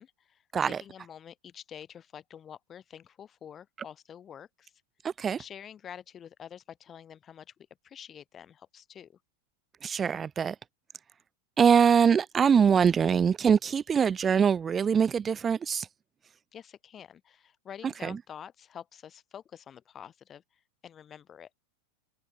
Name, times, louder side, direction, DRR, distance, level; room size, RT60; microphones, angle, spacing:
voice 1, 0.0-4.7 5.4-7.5 7.8-9.2 16.5-20.4 20.8-21.5, left 9 dB, 25° left, 4.1 m, -47 dB
voice 2, 5.0-5.4 9.8-10.6 11.6-15.9 18.0-18.2, right 7 dB, 20° right, 0.4 m, -23 dB
figure-of-eight pair, 90°, 0 cm